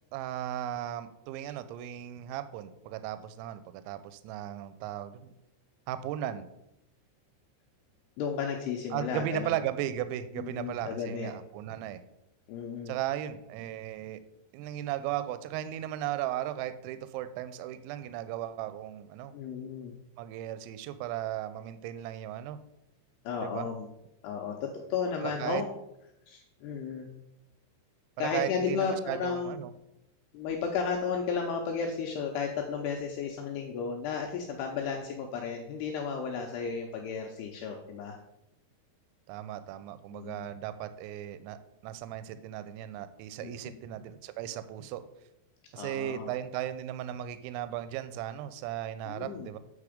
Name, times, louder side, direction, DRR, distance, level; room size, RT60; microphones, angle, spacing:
voice 1, 0.1-5.3 5.9-6.5 8.9-12.0 12.9-14.2 14.5-19.3 20.2-22.6 23.4-23.7 25.2-25.6 28.2-29.7 39.3-45.1 45.7-49.6, right 12 dB, 85° right, 12 dB, 2.8 m, -36 dB
voice 2, 8.2-9.5 10.4-11.3 12.5-12.9 19.3-19.9 23.2-23.9 24.2-25.7 26.3-27.1 28.2-29.5 30.3-38.2 40.1-40.5 43.4-43.8 45.8-46.3 49.1-49.5, left 6 dB, 90° left, 2 dB, 2.3 m, -34 dB
8.4 x 4.8 x 5.0 m, 0.87 s
omnidirectional pair, 5.5 m